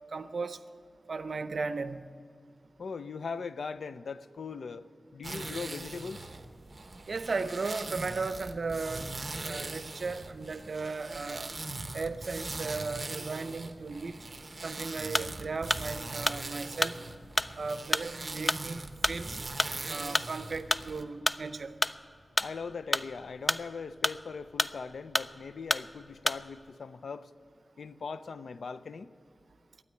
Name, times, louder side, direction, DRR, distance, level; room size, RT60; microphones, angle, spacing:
voice 1, 0.1-0.6 1.1-2.1 7.1-9.1 9.4-11.5 11.9-14.2 14.6-17.0 17.5-19.3 19.9-21.7, right 4 dB, 60° right, 0.6 m, -36 dB
voice 2, 2.8-4.8 5.1-6.3 22.4-27.2 27.8-29.1, left 5 dB, 80° left, 0.5 m, -40 dB
sound 1, 5.2-21.0, right 2 dB, 35° right, 0.9 m, -41 dB
sound 2, 15.1-26.7, left 1 dB, 20° left, 0.3 m, -30 dB
12.5 x 9.5 x 9.8 m
wide cardioid pair, 110°, 0 cm